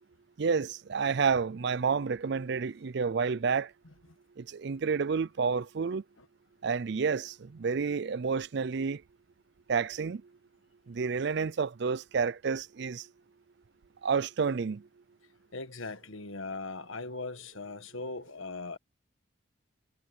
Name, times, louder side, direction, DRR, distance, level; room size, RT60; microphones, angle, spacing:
voice 1, 0.4-3.7 4.4-6.0 6.6-9.0 9.7-10.2 10.9-13.1 14.0-14.8, right 5 dB, 60° right, 0.4 m, -30 dB
voice 2, 15.5-18.8, left 3 dB, 90° left, 1.5 m, -39 dB
head